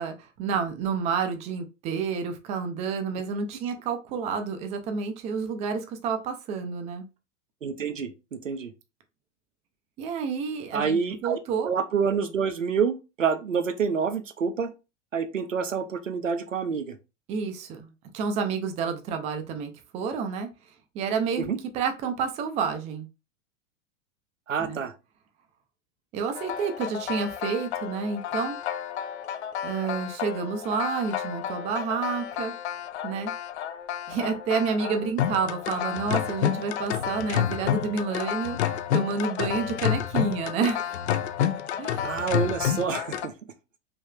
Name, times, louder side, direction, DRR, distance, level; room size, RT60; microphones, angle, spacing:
voice 1, 0.0-7.1 10.0-11.0 11.2-11.7 17.3-20.5 20.9-21.5 21.7-23.1 24.6-24.8 26.1-28.6 29.6-32.5 33.0-33.3 34.1-38.6 38.9-41.0 41.8-42.1, right 5 dB, 20° right, 0.4 m, -29 dB
voice 2, 7.6-8.7 10.7-11.4 11.6-14.7 15.1-17.0 21.4-21.6 24.5-24.9 42.0-43.3, right 6 dB, 90° right, 0.6 m, -27 dB
sound 1, 26.3-43.3, left 10 dB, 65° left, 0.5 m, -30 dB
3.4 x 3.0 x 2.2 m
figure-of-eight pair, 90°, 37 cm